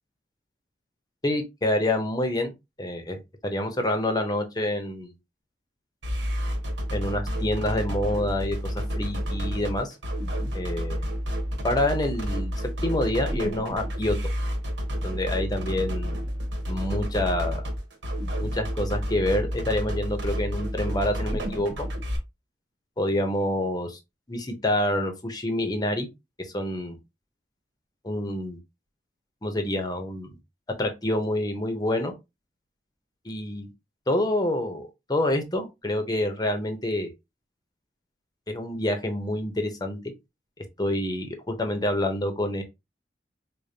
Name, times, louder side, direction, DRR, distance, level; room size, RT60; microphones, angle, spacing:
voice 1, 1.2-2.5 2.8-5.1 6.9-10.0 10.5-11.1 11.6-12.5 12.8-14.2 15.0-16.2 16.7-17.7 18.4-21.9 23.0-24.0 24.3-26.1 26.4-27.0 28.0-28.6 29.4-30.4 30.8-32.1 33.2-33.7 34.1-37.1 38.5-40.0 40.8-42.6, left 1 dB, 25° left, 0.8 m, -27 dB
sound 1, 6.0-22.2, equal, 90° right, 1.0 m, -30 dB
5.0 x 2.2 x 2.7 m
head